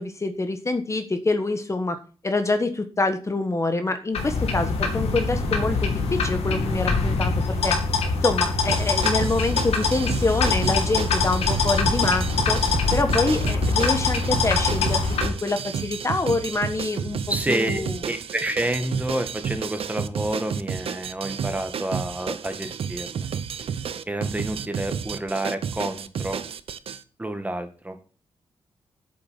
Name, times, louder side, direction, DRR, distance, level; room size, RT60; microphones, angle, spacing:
voice 1, 0.0-2.0 2.2-7.7 8.2-12.6 12.9-17.2 17.5-18.0, left 2 dB, 30° left, 8 dB, 1.4 m, -26 dB
sound 1, 4.1-15.3, left 4 dB, 90° left, 2.5 m, -23 dB
sound 2, 8.7-27.0, right 7 dB, 70° right, 0.8 m, -31 dB
voice 2, 17.3-17.8 18.0-23.3 24.1-26.4 27.2-28.0, right 1 dB, 15° right, 7 dB, 2.0 m, -29 dB
8.5 x 7.8 x 7.5 m, 0.38 s
cardioid pair, 75°, 10 cm